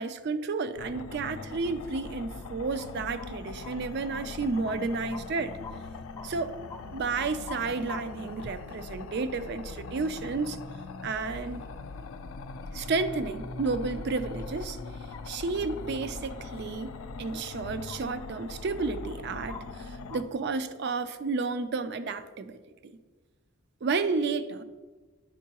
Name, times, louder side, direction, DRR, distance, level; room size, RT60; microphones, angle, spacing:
voice 1, 0.0-5.5 6.2-6.6 6.9-10.6 11.0-11.6 12.7-14.8 15.3-16.9 17.2-22.9 23.8-24.6, right 4 dB, 55° right, 11 dB, 0.4 m, -31 dB
sound 1, 0.8-20.2, left 3 dB, 85° left, 0.4 m, -41 dB
sound 2, 1.6-2.1 2.4-2.9 3.2-3.7 4.1-4.8 5.1-5.2 5.6-5.7 6.2-6.3 6.7-6.9 7.1-8.8 9.1-9.3 10.2-10.7 11.1-12.2 12.5-13.1 13.5-13.6 14.3-15.4 16.0-16.1 17.0-17.1 17.4-18.3 18.6-20.2, left 4 dB, 15° left, 0.3 m, -47 dB
10.0 x 4.5 x 2.9 m, 1.3 s
head